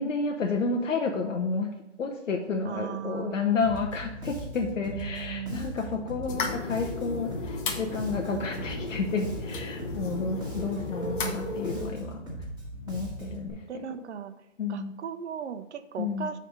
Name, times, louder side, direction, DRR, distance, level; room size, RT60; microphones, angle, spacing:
voice 1, 0.0-1.7 2.0-12.2 12.9-14.1 14.6-15.0 16.0-16.3, left 4 dB, 85° left, 2 dB, 0.9 m, -31 dB
voice 2, 2.7-3.4 4.9-5.7 8.3-8.6 10.7-11.6 13.7-14.3 14.7-16.4, right 8 dB, 65° right, 10 dB, 0.7 m, -37 dB
Bass guitar, 3.6-13.5, right 1 dB, 10° right, 1.8 m, -39 dB
sound 1, 6.3-11.9, left 4 dB, 45° left, 1.2 m, -35 dB
7.0 x 3.5 x 6.2 m, 0.94 s
hypercardioid pair, 140°, 37 cm